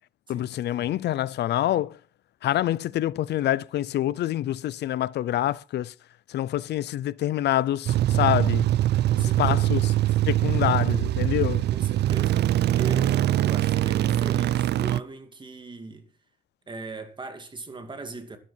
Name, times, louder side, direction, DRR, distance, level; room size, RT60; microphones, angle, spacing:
voice 1, 0.3-2.0 2.4-5.9 6.3-8.7 9.2-9.8 10.3-11.7, left 13 dB, 90° left, 0.5 m, -26 dB
sound 1, 7.9-15.0, right 13 dB, 85° right, 0.5 m, -23 dB
voice 2, 9.0-9.8 11.7-16.1 16.7-18.4, right 3 dB, 30° right, 2.3 m, -39 dB
12.5 x 12.0 x 4.5 m
cardioid pair, 115°, 17 cm